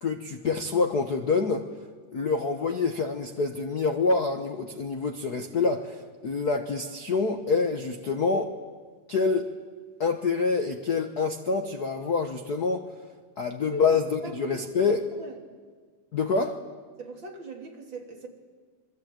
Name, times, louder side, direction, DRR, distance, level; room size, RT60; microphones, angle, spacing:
voice 1, 0.0-1.6 2.1-8.5 9.1-9.5 10.0-12.9 13.4-15.0 16.1-16.6, left 4 dB, 80° left, 6 dB, 0.8 m, -26 dB
voice 2, 13.7-14.6 14.9-15.3 17.0-18.3, right 2 dB, 35° right, 3 dB, 3.4 m, -40 dB
27.5 x 22.5 x 9.1 m, 1.5 s
omnidirectional pair, 3.7 m